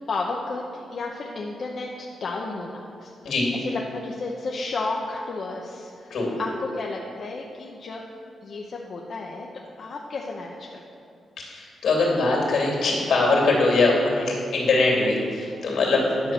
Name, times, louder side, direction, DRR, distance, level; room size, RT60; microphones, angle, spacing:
voice 1, 0.1-3.1 3.6-8.0 8.4-9.5 9.8-10.8, left 3 dB, 55° left, -1 dB, 0.8 m, -32 dB
voice 2, 11.4-16.3, left 3 dB, 80° left, -1 dB, 2.7 m, -22 dB
10.5 x 6.5 x 6.0 m, 2.5 s
cardioid pair, 105°, 0 cm